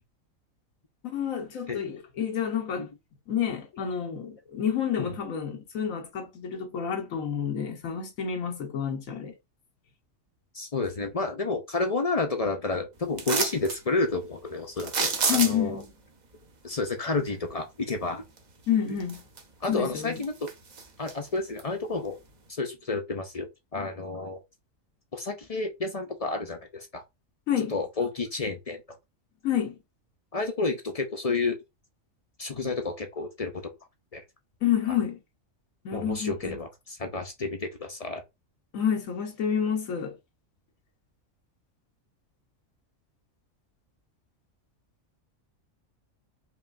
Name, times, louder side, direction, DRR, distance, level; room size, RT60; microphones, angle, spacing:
voice 1, 1.0-2.9 3.3-9.3 15.3-15.9 18.7-19.2 19.7-20.2 27.5-27.7 29.4-29.8 34.6-35.2 35.8-36.6 38.7-40.1, left 8 dB, 85° left, 1.3 m, -29 dB
voice 2, 10.5-15.8 16.6-18.2 19.6-20.5 21.0-22.2 22.5-24.4 25.1-27.0 27.7-28.8 30.3-31.6 32.4-33.7 34.1-34.2 35.9-38.2, left 3 dB, 45° left, 0.5 m, -30 dB
sound 1, 13.2-13.8 14.8-15.8 18.4-18.5 19.0-19.7 20.0-21.1 21.6-21.7, right 4 dB, 40° right, 0.7 m, -28 dB
4.8 x 3.1 x 2.5 m
omnidirectional pair, 1.4 m